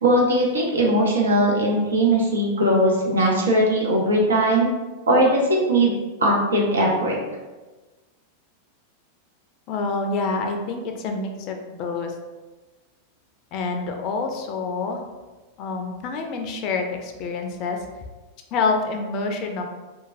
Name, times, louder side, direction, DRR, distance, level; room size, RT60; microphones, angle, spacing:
voice 1, 0.0-4.7 5.1-5.9 6.2-7.2, right 1 dB, 80° right, -2 dB, 0.7 m, -19 dB
voice 2, 9.7-12.1 13.5-15.0 15.6-17.8 18.5-19.6, left 4 dB, 45° left, 4 dB, 0.4 m, -27 dB
3.0 x 2.2 x 2.5 m, 1.2 s
figure-of-eight pair, 95°, 0 cm